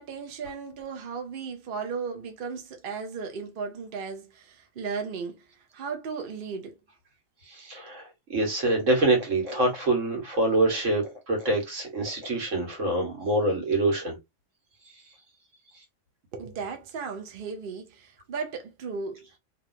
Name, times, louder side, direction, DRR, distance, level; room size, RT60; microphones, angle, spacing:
voice 1, 0.0-5.4 5.7-6.7 16.3-19.3, right 5 dB, 50° right, 0.8 m, -35 dB
voice 2, 7.4-14.2 14.9-15.0, right 2 dB, 85° right, 1.6 m, -25 dB
3.0 x 2.7 x 2.5 m
omnidirectional pair, 1.3 m